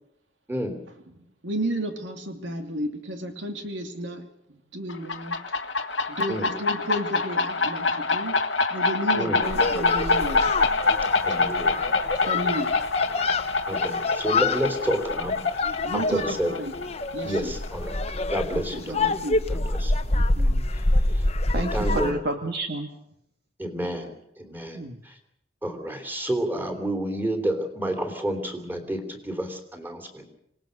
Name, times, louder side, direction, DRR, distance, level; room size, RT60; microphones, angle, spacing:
voice 1, 1.4-5.4 6.1-8.4 8.7-10.5 12.3-12.7 15.8-16.7 17.1-17.5 18.5-19.4, right 1 dB, 85° right, 6 dB, 2.6 m, -32 dB
sound 1, 4.9-18.3, left 3 dB, 85° left, 1.5 m, -26 dB
sound 2, 9.4-22.1, left 2 dB, 35° left, 1.0 m, -27 dB
voice 2, 11.2-11.7 13.6-15.7 15.9-16.5 17.2-18.0 18.3-19.1 19.5-19.9 20.7-20.8 21.1-21.3 21.5-22.2 23.6-25.2 25.6-30.3, right 1 dB, 10° right, 6 dB, 3.3 m, -30 dB
voice 3, 20.1-20.7 21.5-22.9 24.7-25.0, right 1 dB, 60° right, 5 dB, 1.7 m, -31 dB
27.0 x 18.5 x 6.6 m, 0.77 s
head